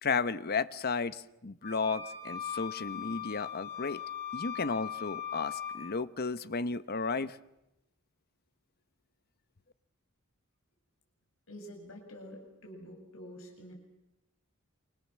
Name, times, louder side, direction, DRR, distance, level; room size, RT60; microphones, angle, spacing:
voice 1, 0.0-4.0 4.3-7.4, left 4 dB, 50° left, 14 dB, 1.0 m, -33 dB
sound 1, 1.6-5.8, left 8 dB, 30° left, 7.3 m, -39 dB
voice 2, 11.5-13.7, equal, 70° left, 3 dB, 7.7 m, -48 dB
29.5 x 26.0 x 7.4 m, 0.92 s
head